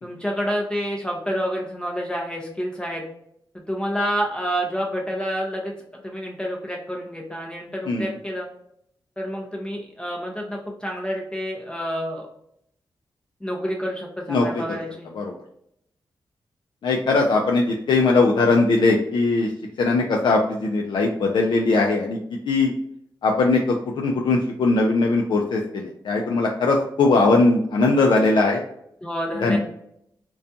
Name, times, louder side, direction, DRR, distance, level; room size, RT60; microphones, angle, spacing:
voice 1, 0.0-3.0 3.7-5.7 6.0-8.5 9.2-12.3 13.4-15.1 29.0-29.6, equal, 10° left, -1 dB, 0.6 m, -28 dB
voice 2, 14.3-14.8 15.1-15.3 16.8-19.5 19.8-22.2 22.5-22.7 23.2-28.6 29.4-29.6, left 3 dB, 65° left, 0 dB, 0.4 m, -20 dB
2.4 x 2.2 x 2.6 m, 0.73 s
cardioid pair, 75°, 8 cm